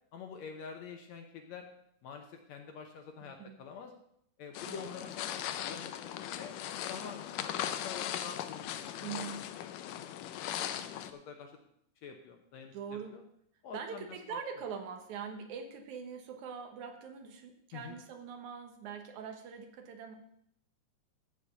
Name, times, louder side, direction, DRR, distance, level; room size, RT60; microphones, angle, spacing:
voice 1, 0.1-1.7 2.0-3.9 4.4-6.5 6.9-9.3 9.9-10.3 10.7-11.6 12.0-13.2 13.6-14.4 17.7-18.0, left 6 dB, 70° left, 4 dB, 2.0 m, -47 dB
voice 2, 3.2-3.6 4.7-5.0 9.0-9.4 10.5-10.7 12.7-13.1 13.7-20.2, right 6 dB, 70° right, 5 dB, 2.6 m, -43 dB
sound 1, 4.5-11.1, left 11 dB, 90° left, 2.3 m, -39 dB
15.0 x 5.1 x 6.8 m, 0.72 s
omnidirectional pair, 3.7 m